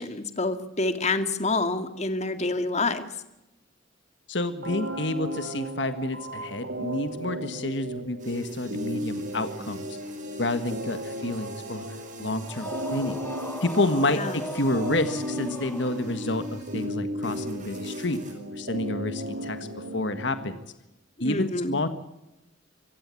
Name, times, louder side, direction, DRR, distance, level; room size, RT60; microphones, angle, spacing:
voice 1, 0.0-3.1 14.1-14.4 21.2-21.8, left 3 dB, 40° left, 9 dB, 2.0 m, -27 dB
voice 2, 4.3-9.9 10.4-11.8 12.2-13.2 13.6-18.2 18.5-19.6 19.9-20.6 21.2-21.9, left 2 dB, 70° left, 10 dB, 1.7 m, -29 dB
sound 1, 4.6-20.6, equal, 75° right, 3.1 m, -35 dB
sound 2, 8.2-16.9 17.2-18.3, right 5 dB, 45° right, 6.1 m, -49 dB
sound 3, 12.4-16.4, left 1 dB, 10° left, 1.0 m, -39 dB
25.5 x 16.0 x 8.5 m, 0.93 s
head